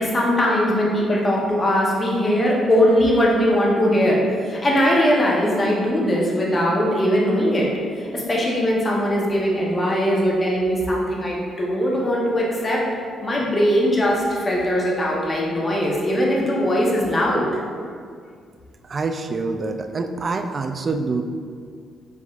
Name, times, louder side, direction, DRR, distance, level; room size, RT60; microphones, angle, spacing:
voice 1, 0.0-4.2 4.5-7.7 8.1-12.8 13.2-17.5, equal, 30° left, -3 dB, 0.9 m, -20 dB
voice 2, 18.9-21.2, right 3 dB, 40° right, 6 dB, 0.3 m, -26 dB
4.7 x 4.0 x 2.4 m, 2.1 s
cardioid pair, 90°, 0 cm